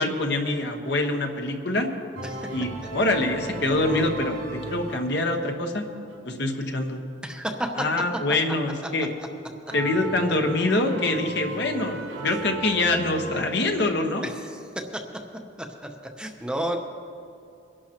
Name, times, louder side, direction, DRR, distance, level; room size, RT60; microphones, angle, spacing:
voice 1, 0.0-1.9 2.5-5.8 6.2-7.0 7.8-9.1 9.7-14.3, left 2 dB, 60° left, 3 dB, 1.2 m, -25 dB
sound 1, 2.1-5.6 6.1-6.2 7.3-7.4 9.7-13.4, right 3 dB, 80° right, 2.8 m, -36 dB
voice 2, 7.2-7.8 12.3-12.4 14.2-14.8 16.2-16.8, right 1 dB, 5° right, 3 dB, 0.7 m, -31 dB
23.0 x 11.5 x 3.0 m, 2.5 s
head